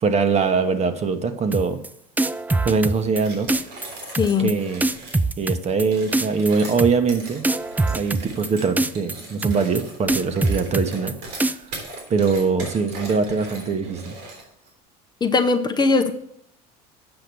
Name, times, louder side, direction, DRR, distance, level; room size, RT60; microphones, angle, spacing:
voice 1, 0.0-1.8 2.6-3.5 4.4-4.8 5.4-7.4 7.9-11.6 12.1-14.2, right 5 dB, 35° right, 8 dB, 1.1 m, -22 dB
sound 1, 1.5-1.9 2.2-3.2 3.5-3.9 4.1-4.5 4.8-5.8 6.1-6.5 6.8-7.2 7.4-8.5 8.8-9.1 9.4-9.8 10.1-11.1 11.4-11.8, right 2 dB, 10° right, 0.3 m, -23 dB
sound 2, 3.2-5.2 5.8-14.7, right 2 dB, 90° right, 3.4 m, -39 dB
voice 2, 4.2-4.5 15.2-16.1, left 4 dB, 25° left, 6 dB, 0.7 m, -19 dB
8.0 x 5.7 x 6.8 m, 0.71 s
supercardioid pair, 105°, 19 cm